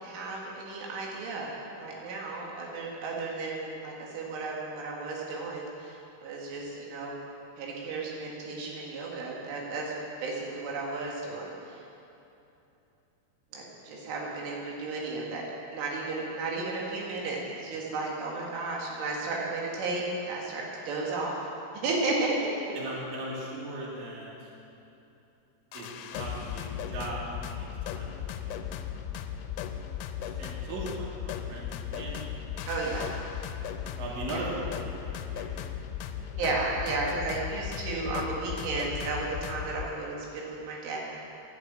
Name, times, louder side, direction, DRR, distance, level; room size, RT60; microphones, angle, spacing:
voice 1, 0.0-1.5 1.8-7.1 7.6-9.9 10.2-11.8 13.5-15.4 15.7-21.5 21.7-22.7 32.7-33.1 34.3-34.5 36.4-41.0, right 3 dB, 85° right, -3 dB, 4.6 m, -33 dB
voice 2, 22.8-24.5 25.7-25.9 26.1-29.2 30.2-32.7 34.0-35.9 36.1-36.3, right 2 dB, 50° right, -4 dB, 3.8 m, -39 dB
sound 1, 25.7-39.9, left 9 dB, 85° left, 3.0 m, -37 dB
11.5 x 11.0 x 8.9 m, 2.8 s
omnidirectional pair, 5.4 m